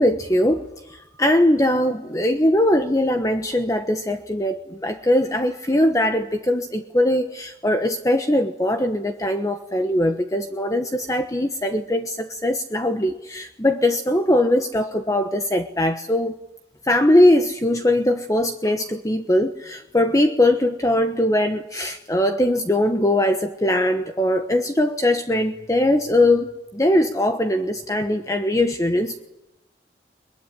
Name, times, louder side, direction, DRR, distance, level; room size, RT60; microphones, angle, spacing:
voice 1, 0.0-16.3 16.8-29.2, left 1 dB, 20° left, 6 dB, 1.2 m, -21 dB
22.5 x 22.0 x 10.0 m, 0.90 s
head